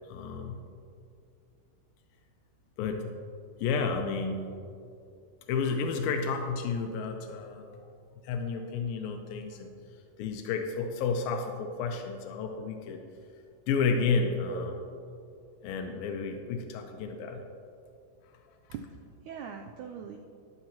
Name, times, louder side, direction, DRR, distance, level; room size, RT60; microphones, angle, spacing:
voice 1, 0.1-0.6 2.8-3.1 3.6-4.5 5.5-7.8 8.2-9.7 10.2-13.0 13.7-14.7 15.6-17.4, left 5 dB, 90° left, 4 dB, 2.4 m, -31 dB
voice 2, 14.4-14.9 18.7-20.2, right 6 dB, 85° right, 3 dB, 1.7 m, -41 dB
13.5 x 10.5 x 2.9 m, 2.5 s
omnidirectional pair, 4.1 m